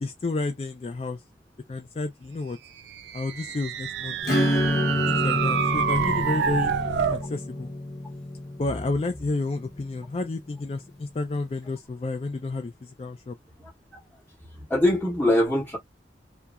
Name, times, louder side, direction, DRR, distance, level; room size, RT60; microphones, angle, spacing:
voice 1, 0.0-1.2 1.7-2.6 3.1-4.2 5.1-6.7 7.1-7.7 8.6-13.4, left 3 dB, 35° left, 0.3 m, -30 dB
sound 1, 2.9-7.3, right 7 dB, 70° right, 0.3 m, -27 dB
Acoustic guitar / Strum, 4.2-10.5, left 1 dB, 55° left, 0.9 m, -28 dB
voice 2, 14.5-15.8, left 1 dB, 10° left, 0.7 m, -22 dB
2.9 x 2.2 x 2.3 m
head